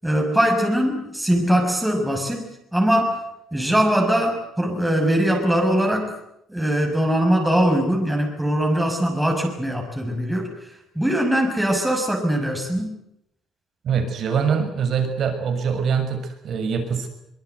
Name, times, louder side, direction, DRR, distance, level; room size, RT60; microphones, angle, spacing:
voice 1, 0.0-3.2 3.5-6.2 6.5-12.9, equal, 5° right, 2 dB, 6.2 m, -21 dB
voice 2, 13.8-17.1, right 6 dB, 55° right, 7 dB, 6.5 m, -23 dB
24.0 x 22.5 x 8.2 m, 0.80 s
cardioid pair, 115°, 0 cm